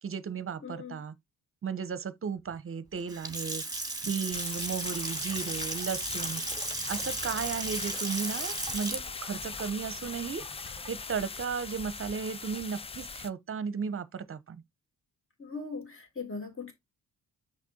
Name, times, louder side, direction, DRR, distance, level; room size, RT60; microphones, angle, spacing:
voice 1, 0.0-1.1 1.6-3.6 4.0-6.4 6.9-10.4 10.9-14.6, right 6 dB, 35° right, 0.9 m, -35 dB
voice 2, 0.6-1.0 15.4-16.7, left 4 dB, 35° left, 3.1 m, -39 dB
Water tap faucet / Sink (filling or washing) / Splash splatter, 3.0-11.1, right 2 dB, 10° right, 1.8 m, -36 dB
sound 1, 4.3-13.3, left 5 dB, 15° left, 0.4 m, -40 dB
6.5 x 5.9 x 2.8 m
hypercardioid pair, 50°, 38 cm